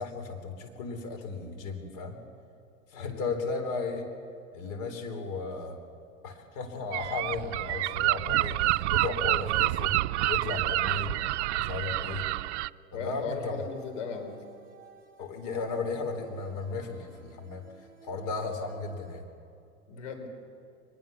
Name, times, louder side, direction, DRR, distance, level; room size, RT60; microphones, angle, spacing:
voice 1, 0.0-2.2 2.9-4.0 4.5-5.8 6.2-9.9 10.3-11.1 11.5-12.2 12.9-13.6 15.2-17.7 18.0-19.2, left 4 dB, 50° left, 5 dB, 3.9 m, -35 dB
voice 2, 2.9-3.3 12.9-14.4 19.9-20.3, left 5 dB, 70° left, 4 dB, 4.3 m, -37 dB
Gull seagull, 6.9-12.7, right 17 dB, 60° right, 0.5 m, -28 dB
sound 1, 13.5-19.2, right 5 dB, 20° right, 6.7 m, -56 dB
23.0 x 21.0 x 7.1 m, 2.5 s
hypercardioid pair, 90°, 39 cm